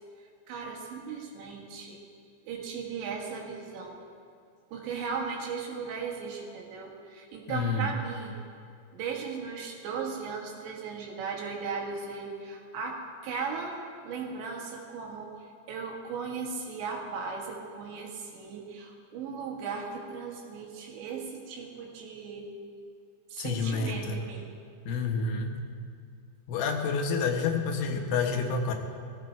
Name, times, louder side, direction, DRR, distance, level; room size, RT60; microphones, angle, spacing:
voice 1, 0.5-2.0 2.4-4.0 4.7-8.3 8.9-13.8 14.0-22.5 23.3-24.5, right 5 dB, 75° right, 0 dB, 4.0 m, -37 dB
voice 2, 7.5-7.9 23.4-24.2 24.9-25.5 26.5-28.7, left 4 dB, 70° left, 3 dB, 3.0 m, -29 dB
19.0 x 15.0 x 4.6 m, 2.4 s
omnidirectional pair, 5.2 m